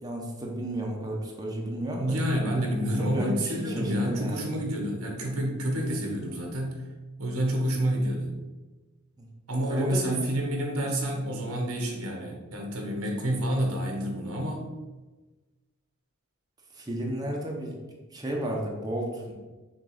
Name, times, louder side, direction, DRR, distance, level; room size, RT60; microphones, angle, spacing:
voice 1, 0.0-2.2 2.9-4.4 9.2-9.3 9.7-10.2 13.2-13.3 16.7-17.7 18.1-19.3, right 1 dB, 20° right, -1 dB, 0.9 m, -32 dB
voice 2, 2.0-6.8 7.2-8.3 9.5-14.6, equal, 80° right, 1 dB, 1.4 m, -29 dB
6.4 x 3.4 x 4.9 m, 1.2 s
head